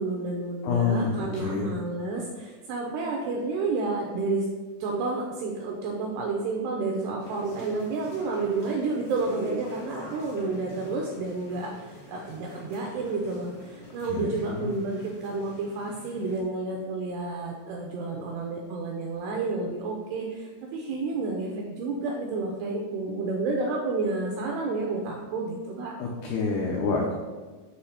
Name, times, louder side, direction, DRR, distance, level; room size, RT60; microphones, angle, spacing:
voice 1, 0.0-4.4 4.8-25.9, right 3 dB, 85° right, 0 dB, 2.3 m, -30 dB
voice 2, 0.6-1.7 14.1-14.7 26.0-27.1, left 4 dB, 85° left, 0 dB, 2.2 m, -27 dB
sound 1, 7.2-16.4, equal, 70° left, 0.7 m, -45 dB
8.3 x 3.2 x 5.6 m, 1.3 s
omnidirectional pair, 5.5 m